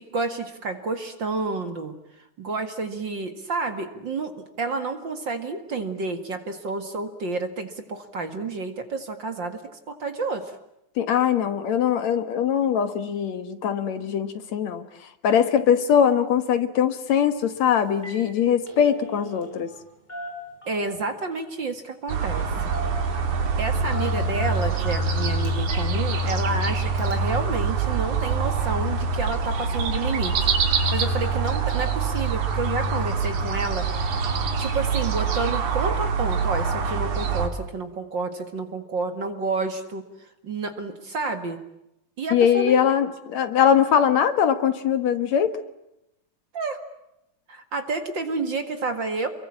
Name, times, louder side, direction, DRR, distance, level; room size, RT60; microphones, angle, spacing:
voice 1, 0.0-1.9 2.4-9.6 9.9-10.6 20.7-22.7 23.6-34.2 34.6-40.0 40.4-41.6 42.2-42.8 46.5-46.8 47.5-49.3, right 3 dB, 40° right, 8 dB, 2.4 m, -30 dB
voice 2, 11.0-14.8 15.2-19.7 42.3-45.5, left 8 dB, 70° left, 10 dB, 2.7 m, -21 dB
Telephone, 17.4-17.6 17.9-18.2 18.5-19.8 20.1-21.0 22.2-22.4 22.7-23.4 23.9-25.9 26.3-26.4 27.0-27.1, right 1 dB, 15° left, 6.5 m, -39 dB
sound 1, 22.1-37.5, right 4 dB, 80° right, 4.1 m, -25 dB
29.0 x 23.0 x 8.6 m, 0.85 s
omnidirectional pair, 3.4 m